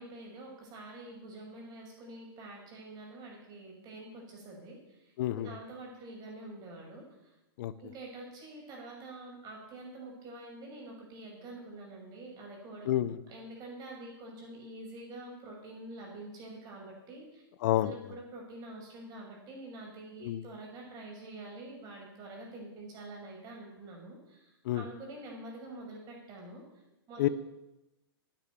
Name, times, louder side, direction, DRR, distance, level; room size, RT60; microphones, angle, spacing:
voice 1, 0.0-7.3 7.8-26.6 27.1-27.3, right 2 dB, 30° right, -1 dB, 6.4 m, -47 dB
voice 2, 5.2-5.5 7.6-7.7 12.9-13.2 17.6-17.9 20.2-20.4 24.6-24.8 27.2-27.3, left 13 dB, 55° left, 14 dB, 0.8 m, -28 dB
10.0 x 9.1 x 9.5 m, 0.96 s
hypercardioid pair, 130°, 13 cm